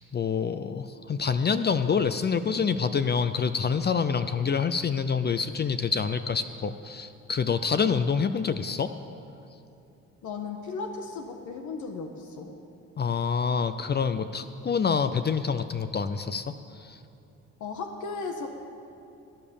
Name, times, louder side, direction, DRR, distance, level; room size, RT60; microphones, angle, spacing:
voice 1, 0.1-8.9 13.0-16.5 16.7-17.0, left 6 dB, 35° left, 10 dB, 0.6 m, -27 dB
voice 2, 10.2-12.6 17.6-18.5, left 4 dB, 75° left, 3 dB, 1.4 m, -36 dB
17.5 x 10.0 x 7.1 m, 2.8 s
cardioid pair, 90°, 30 cm